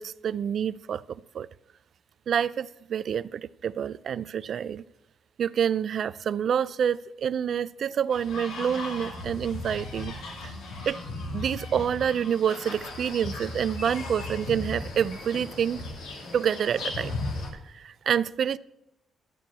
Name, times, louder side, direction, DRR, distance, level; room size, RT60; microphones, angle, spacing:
voice 1, 0.0-1.5 2.3-4.8 5.4-10.1 10.9-11.0 11.3-15.8 16.3-17.1 17.7-18.6, right 8 dB, 60° right, 0.3 m, -27 dB
sound 1, 8.1-17.5, left 2 dB, 90° left, 2.4 m, -36 dB
13.0 x 4.6 x 8.5 m
cardioid pair, 90°, 0 cm